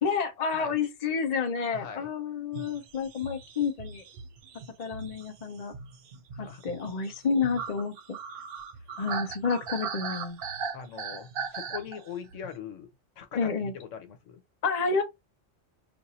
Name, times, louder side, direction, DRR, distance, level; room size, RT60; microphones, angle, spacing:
voice 1, 0.0-4.0 4.8-5.7 6.4-7.9 9.0-10.4 13.3-13.7 14.6-15.0, left 5 dB, 40° left, 0.8 m, -29 dB
voice 2, 1.7-2.1 6.3-6.6 9.1-9.2 10.7-12.9 13.2-14.4, left 8 dB, 85° left, 1.1 m, -41 dB
sound 1, 2.5-12.5, right 6 dB, 60° right, 0.7 m, -39 dB
2.6 x 2.6 x 4.1 m
omnidirectional pair, 1.3 m